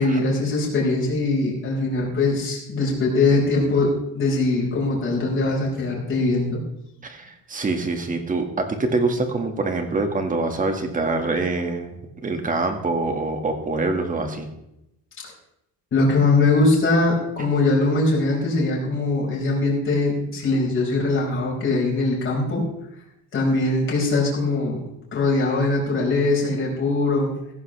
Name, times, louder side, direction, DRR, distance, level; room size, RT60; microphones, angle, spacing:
voice 1, 0.0-6.6 15.9-22.6 23.3-24.8 25.1-27.3, left 2 dB, 35° left, -2 dB, 5.2 m, -21 dB
voice 2, 7.0-11.9 12.2-14.5, right 3 dB, 25° right, 5 dB, 1.9 m, -25 dB
16.0 x 14.5 x 3.4 m, 0.83 s
cardioid pair, 170°, 34 cm